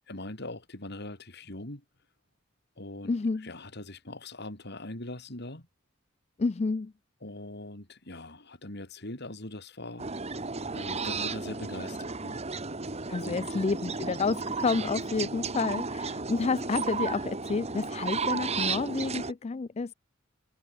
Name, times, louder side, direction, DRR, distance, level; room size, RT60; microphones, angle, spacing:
voice 1, 0.0-1.8 2.8-3.1 3.4-5.7 7.2-10.1 10.7-12.4 13.2-13.4, left 2 dB, 55° left, 3.9 m, -41 dB
voice 2, 3.0-3.5 6.4-6.9 13.1-19.9, left 4 dB, 35° left, 0.4 m, -30 dB
sound 1, 10.0-19.3, right 4 dB, 35° right, 1.7 m, -33 dB
head